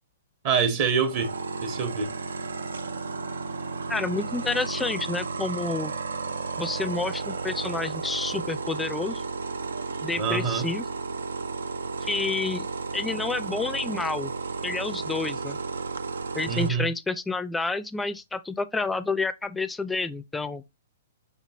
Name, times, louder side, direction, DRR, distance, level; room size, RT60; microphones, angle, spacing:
voice 1, 0.4-1.3 1.6-2.1 10.2-10.7 16.5-16.9, right 6 dB, 45° right, 1.1 m, -25 dB
sound 1, 0.9-16.7, right 4 dB, 85° right, 0.4 m, -33 dB
voice 2, 3.9-5.9 6.6-9.2 10.0-10.8 12.0-12.7 12.9-14.3 14.6-15.6 16.3-20.6, left 3 dB, 10° left, 0.4 m, -29 dB
5.5 x 3.0 x 2.9 m
hypercardioid pair, 125°, 0 cm